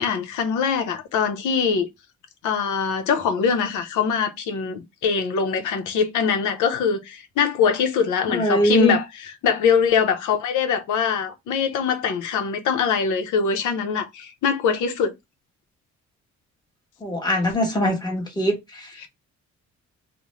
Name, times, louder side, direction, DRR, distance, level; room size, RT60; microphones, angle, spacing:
voice 1, 0.0-1.9 2.4-15.1 19.0-19.1, left 6 dB, 80° left, 0.7 m, -23 dB
voice 2, 8.3-8.9 17.0-18.9, equal, 15° left, 1.1 m, -22 dB
2.5 x 2.1 x 2.9 m
cardioid pair, 90°, 30 cm